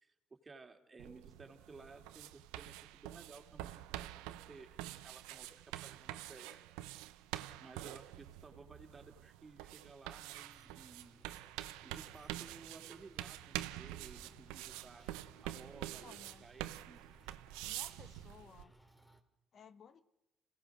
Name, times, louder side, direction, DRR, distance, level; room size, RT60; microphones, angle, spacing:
voice 1, 0.0-6.6 7.6-11.2 11.8-15.0 15.4-16.1 16.4-17.0, right 3 dB, 30° right, 4 dB, 3.1 m, -56 dB
sound 1, 1.0-18.6, right 15 dB, 90° right, 0.7 m, -47 dB
sound 2, 10.4-19.2, right 1 dB, 15° left, 2.8 m, -65 dB
voice 2, 16.0-16.4 17.6-18.7 19.5-20.0, left 6 dB, 55° left, 12 dB, 1.2 m, -57 dB
27.0 x 17.5 x 6.3 m, 0.92 s
supercardioid pair, 65°, 0 cm